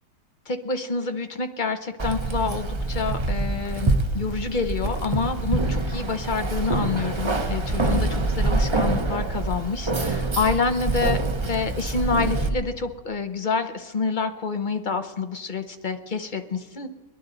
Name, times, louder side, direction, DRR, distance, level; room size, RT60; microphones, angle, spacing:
voice 1, 0.5-16.9, left 4 dB, 40° left, 7 dB, 0.7 m, -28 dB
Keys jangling, 2.0-12.5, right 2 dB, 35° right, 0.4 m, -25 dB
22.5 x 11.0 x 3.9 m, 1.2 s
omnidirectional pair, 1.8 m